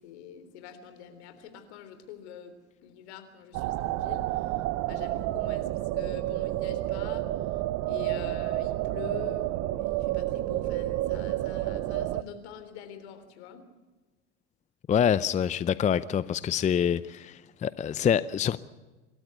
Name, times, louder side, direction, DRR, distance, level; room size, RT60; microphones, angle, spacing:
voice 1, 0.0-2.5 2.8-5.7 5.9-13.6, left 8 dB, 65° left, 9 dB, 3.6 m, -45 dB
sound 1, 3.5-12.2, right 16 dB, 50° right, 0.9 m, -30 dB
voice 2, 14.9-18.6, left 8 dB, 20° left, 17 dB, 0.6 m, -26 dB
27.0 x 13.5 x 8.2 m, 1.2 s
hypercardioid pair, 85°, 35 cm